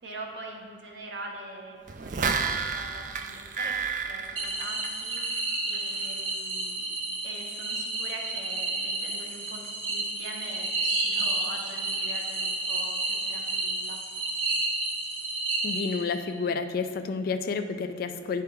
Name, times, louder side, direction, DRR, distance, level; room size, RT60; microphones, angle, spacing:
voice 1, 0.0-6.8 7.2-14.0, right 2 dB, 65° right, 1 dB, 0.9 m, -43 dB
sound 1, 1.9-5.4 5.7-5.8, right 5 dB, 40° right, 0.4 m, -31 dB
sound 2, 4.4-16.3, right 2 dB, 85° right, 1.2 m, -31 dB
voice 2, 15.6-18.4, left 4 dB, 50° left, 9 dB, 0.3 m, -30 dB
9.2 x 3.5 x 4.6 m, 2.3 s
head